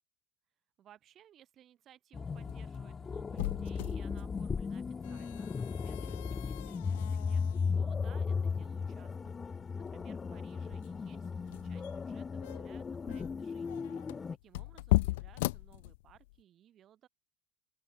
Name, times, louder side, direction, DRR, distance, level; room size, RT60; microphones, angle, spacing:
voice 1, 0.8-17.1, right 11 dB, 40° right, 5.1 m, -61 dB
sound 1, 2.1-14.4, left 5 dB, 20° left, 0.6 m, -36 dB
sound 2, 2.2-16.4, left 20 dB, 80° left, 1.1 m, -38 dB
open air
supercardioid pair, 110°, 0 cm